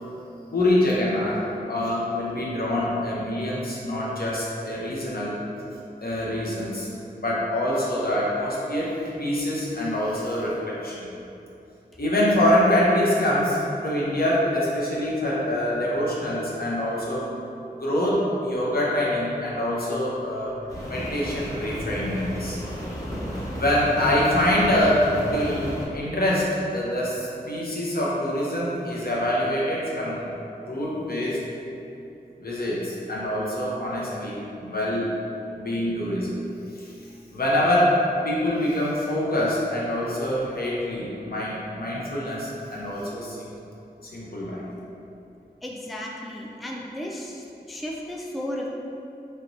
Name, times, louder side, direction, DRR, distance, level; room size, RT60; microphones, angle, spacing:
voice 1, 0.5-5.4 6.0-6.9 7.2-11.1 12.0-17.3 17.8-20.5 20.9-22.6 23.5-30.3 30.6-31.4 32.4-35.2 35.6-36.4 36.7-36.9 37.3-38.0 38.2-43.5 44.0-44.7, left 1 dB, 65° left, -6 dB, 0.7 m, -25 dB
Rain, 20.7-25.9, equal, 20° left, 0.8 m, -33 dB
voice 2, 45.6-47.4 47.7-48.7, left 1 dB, ahead, -2 dB, 0.3 m, -34 dB
3.2 x 2.6 x 3.0 m, 2.8 s
wide cardioid pair, 45°, 17 cm